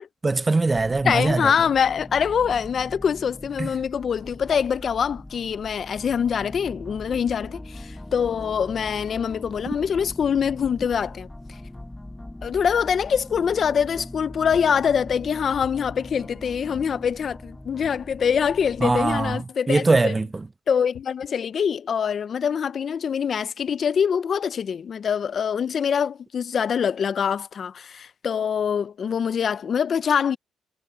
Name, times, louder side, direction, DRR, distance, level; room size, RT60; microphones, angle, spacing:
voice 1, 0.2-1.5 3.6-3.7 9.7-9.8 18.8-19.4 19.7-20.5, right 3 dB, 25° right, 0.6 m, -22 dB
sound 1, 0.7-19.4, left 1 dB, 10° left, 2.1 m, -41 dB
voice 2, 1.0-11.3 12.4-20.1 20.7-30.4, left 7 dB, 50° left, 0.6 m, -24 dB
sound 2, 14.5-14.9 15.6-16.1 16.7-17.2 17.8-18.2 18.9-19.3 19.9-20.2 20.9-21.3, left 11 dB, 70° left, 1.0 m, -45 dB
cardioid pair, 90°, 0 cm